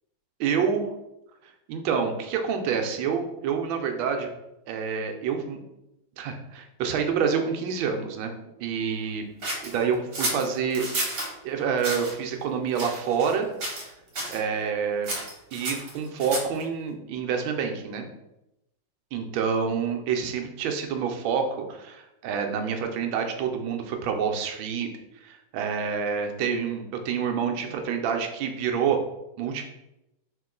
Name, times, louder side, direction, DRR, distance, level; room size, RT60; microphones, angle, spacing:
voice 1, 0.4-0.9 1.7-4.3 4.7-5.6 6.2-8.3 8.6-9.2 9.7-10.9 11.4-13.5 14.3-15.1 15.5-18.1 19.1-24.9 25.2-29.0 29.4-29.6, right 6 dB, 75° right, 4 dB, 1.3 m, -27 dB
sound 1, 9.4-11.3 11.8-12.1 12.7-13.4 13.6-13.9 14.1-14.4 15.0-16.6, right 1 dB, 50° right, 1.4 m, -31 dB
3.5 x 2.9 x 3.7 m, 0.89 s
omnidirectional pair, 2.3 m